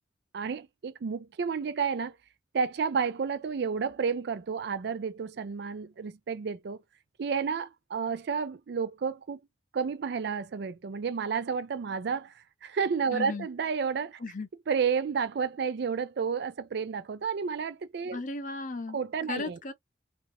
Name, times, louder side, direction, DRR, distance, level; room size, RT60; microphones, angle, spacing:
voice 1, 0.3-2.2 2.5-6.8 7.2-9.4 9.7-12.3 12.6-14.2 14.7-18.2 18.9-19.6, right 6 dB, 65° right, 0.4 m, -31 dB
voice 2, 13.1-13.5 14.2-14.5 18.1-19.0 19.3-19.7, left 3 dB, 45° left, 0.7 m, -35 dB
2.8 x 2.5 x 3.0 m
head